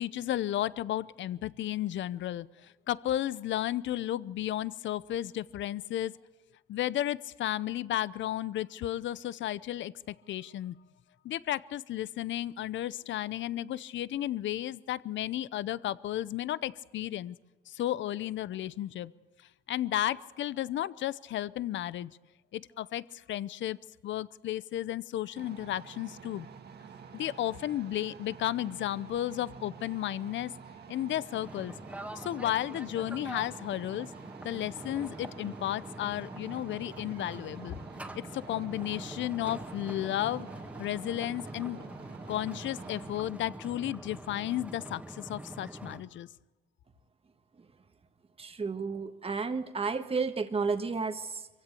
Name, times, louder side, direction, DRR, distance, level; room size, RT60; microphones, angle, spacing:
voice 1, 0.0-6.1 6.7-10.8 11.2-17.4 17.7-19.1 19.7-22.2 22.5-23.8 24.0-26.5 27.1-30.5 30.9-31.7 32.2-34.1 34.4-37.8 38.1-40.5 40.8-41.8 42.3-46.3, left 13 dB, 70° left, 20 dB, 0.7 m, -33 dB
sound 1, 25.3-43.2, right 6 dB, 55° right, 1.9 m, -49 dB
sound 2, 31.3-46.0, right 1 dB, 5° right, 1.9 m, -44 dB
voice 2, 48.4-51.5, right 4 dB, 30° right, 8 dB, 1.4 m, -32 dB
24.0 x 16.0 x 8.5 m, 1.2 s
cardioid pair, 90°, 20 cm